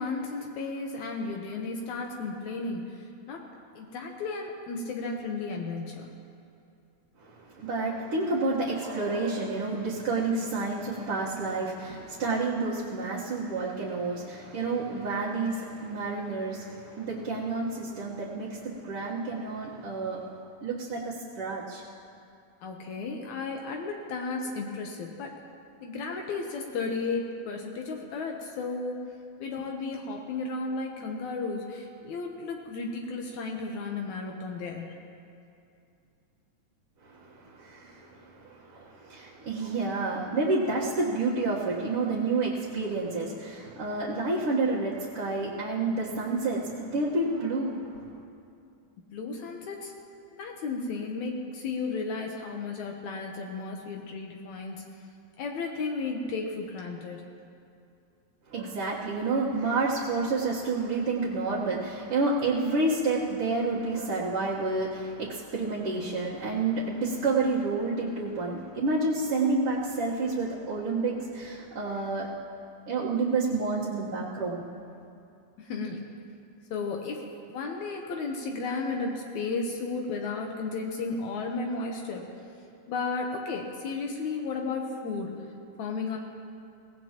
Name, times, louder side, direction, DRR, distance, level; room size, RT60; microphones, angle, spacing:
voice 1, 0.0-2.8 3.3-3.4 3.8-6.1 22.6-25.4 25.8-29.1 29.4-34.9 49.1-49.9 50.4-54.8 55.4-57.2 75.6-76.0 76.7-77.2 77.5-82.2 82.9-85.4 85.8-86.2, left 3 dB, 75° left, 1 dB, 2.3 m, -34 dB
voice 2, 7.6-16.7 17.0-20.2 20.6-21.8 39.1-47.8 58.5-72.3 72.9-74.6, right 3 dB, 55° right, -7 dB, 2.1 m, -29 dB
23.5 x 18.0 x 3.0 m, 2.5 s
omnidirectional pair, 3.4 m